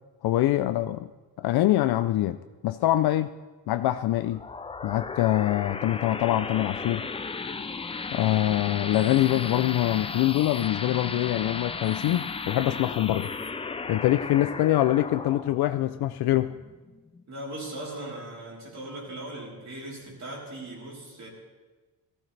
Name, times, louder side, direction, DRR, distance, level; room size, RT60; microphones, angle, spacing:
voice 1, 0.2-1.1 1.4-2.4 2.6-3.3 3.7-4.4 4.8-7.0 8.1-13.3 13.9-16.5, left 14 dB, 80° left, 10 dB, 0.5 m, -24 dB
sound 1, 4.1-17.2, left 4 dB, 15° left, 0.4 m, -35 dB
voice 2, 17.3-21.3, right 1 dB, 45° right, -2 dB, 3.6 m, -39 dB
18.0 x 15.0 x 3.3 m, 1.3 s
wide cardioid pair, 160°, 37 cm